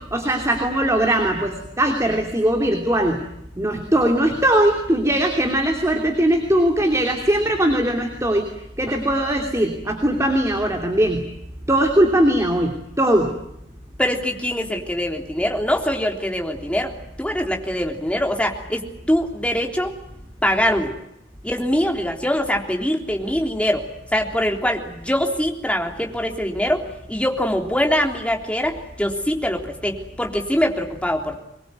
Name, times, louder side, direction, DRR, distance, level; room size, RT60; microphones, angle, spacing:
voice 1, 0.1-3.2 3.6-8.5 8.8-11.2 11.7-13.3, right 1 dB, 15° right, 3 dB, 2.9 m, -20 dB
voice 2, 14.0-16.9 17.2-20.0 20.4-20.9 21.4-23.9 24.1-26.8 27.1-31.4, equal, 5° left, 2 dB, 3.5 m, -23 dB
24.0 x 22.0 x 9.4 m, 0.82 s
head